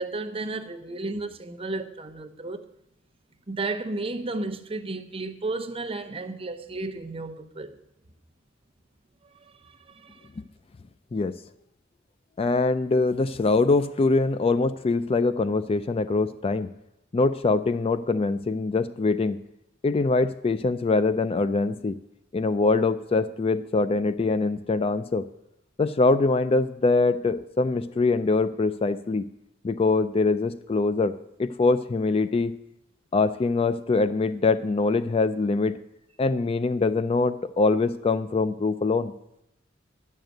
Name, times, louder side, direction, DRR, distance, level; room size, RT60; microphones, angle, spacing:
voice 1, 0.0-2.7 3.5-7.7 9.6-10.3, right 3 dB, 30° right, 0.8 m, -33 dB
voice 2, 12.4-16.7 17.1-19.4 19.8-22.0 22.3-25.3 25.8-29.2 29.6-32.6 33.1-35.8 36.2-39.1, left 3 dB, 30° left, 0.3 m, -23 dB
10.5 x 6.6 x 9.0 m
head